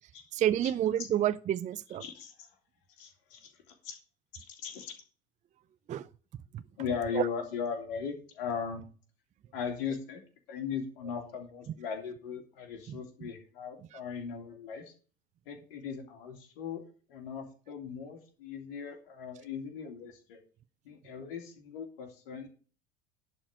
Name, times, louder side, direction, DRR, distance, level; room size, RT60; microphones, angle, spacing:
voice 1, 0.3-2.0 5.9-6.0 6.5-6.6 7.1-7.2 12.9-13.0, right 11 dB, 25° right, 0.5 m, -29 dB
voice 2, 2.0-2.5 3.0-4.0 4.3-4.9 6.8-8.8 9.5-10.2 10.5-14.9 15.5-16.8 17.1-20.4 20.8-22.5, left 6 dB, 60° left, 2.5 m, -38 dB
11.5 x 4.4 x 8.0 m
figure-of-eight pair, 70°, 30 cm